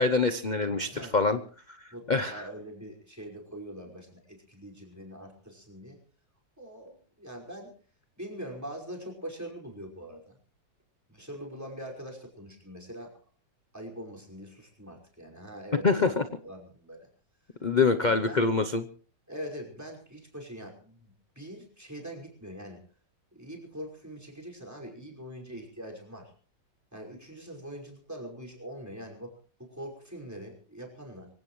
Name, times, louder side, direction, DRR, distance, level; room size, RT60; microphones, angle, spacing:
voice 1, 0.0-1.4 2.1-2.4 15.8-16.2 17.6-18.8, left 4 dB, 55° left, 10 dB, 0.5 m, -25 dB
voice 2, 0.7-1.2 1.9-6.0 6.6-7.7 8.2-10.4 11.1-13.1 13.7-17.1 18.0-18.5 19.3-22.8 23.3-26.3 26.9-29.3 29.6-31.3, equal, 10° right, 1 dB, 5.3 m, -43 dB
25.0 x 17.0 x 3.1 m, 0.42 s
omnidirectional pair, 2.0 m